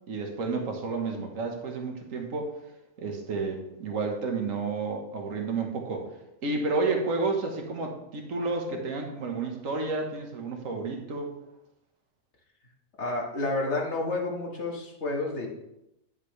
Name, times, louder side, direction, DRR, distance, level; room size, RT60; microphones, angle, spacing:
voice 1, 0.1-2.5 3.0-6.1 6.4-11.3, right 3 dB, 80° right, 3 dB, 1.6 m, -31 dB
voice 2, 13.0-15.5, left 2 dB, 60° left, -2 dB, 2.0 m, -30 dB
10.5 x 7.3 x 3.2 m, 0.88 s
omnidirectional pair, 1.4 m